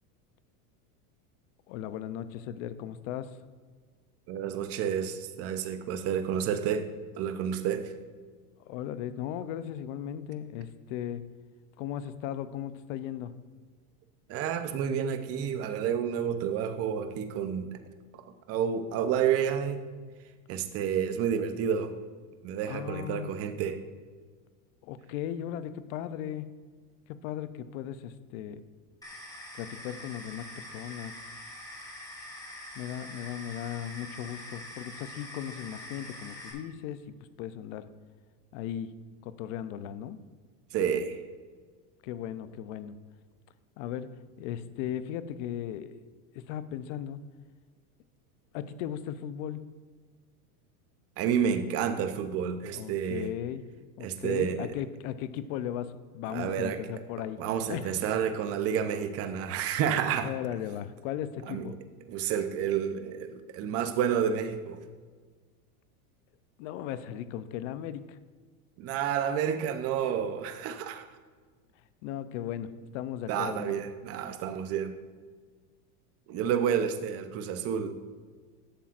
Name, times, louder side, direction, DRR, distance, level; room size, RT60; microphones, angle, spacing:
voice 1, 1.7-3.4 8.7-11.2 11.8-13.4 22.7-23.3 24.8-26.5 27.1-28.6 29.6-31.1 32.8-37.0 37.4-37.9 38.5-38.9 39.2-40.2 42.0-43.0 43.8-46.0 46.3-47.2 48.5-49.6 52.7-53.7 54.0-57.4 57.7-57.9 60.2-61.8 66.6-68.2 72.0-73.8, left 10 dB, 55° left, 13 dB, 0.6 m, -37 dB
voice 2, 4.3-6.9 7.2-7.9 14.3-17.8 18.5-19.8 20.5-21.9 22.4-23.8 40.7-41.2 51.2-53.3 54.0-54.7 56.3-56.8 57.4-60.3 61.5-61.7 62.1-64.8 68.8-71.1 73.3-74.9 76.3-78.0, right 8 dB, 30° right, 8 dB, 0.6 m, -30 dB
sound 1, 29.0-36.5, left 1 dB, 10° left, 1.5 m, -44 dB
11.5 x 7.3 x 2.5 m, 1.5 s
supercardioid pair, 140°, 45 cm